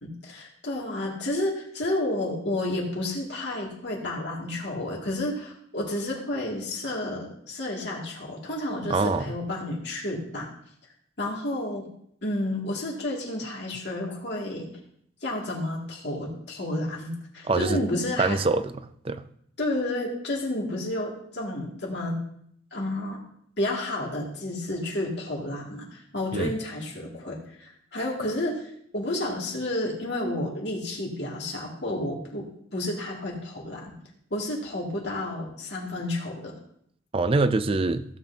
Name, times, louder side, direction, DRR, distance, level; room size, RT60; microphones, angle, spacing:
voice 1, 0.0-10.5 11.2-11.9 12.2-14.7 15.2-18.4 19.6-22.2 22.7-23.2 23.6-33.9 34.3-36.5, left 1 dB, 60° left, 2.3 m, -31 dB
voice 2, 8.9-9.3 17.5-17.8 18.2-18.7 19.0-19.2 26.3-26.5 37.1-38.1, right 3 dB, 30° right, 0.4 m, -24 dB
16.0 x 8.1 x 2.8 m
head